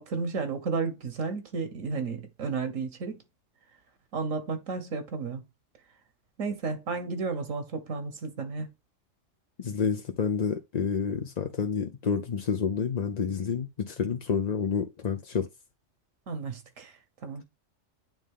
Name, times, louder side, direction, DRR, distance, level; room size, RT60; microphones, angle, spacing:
voice 1, 0.0-3.2 4.1-5.4 6.4-8.7 16.3-17.4, right 4 dB, 80° right, 1.5 m, -33 dB
voice 2, 9.6-15.5, left 6 dB, 45° left, 0.6 m, -29 dB
9.0 x 3.7 x 3.6 m
omnidirectional pair, 1.3 m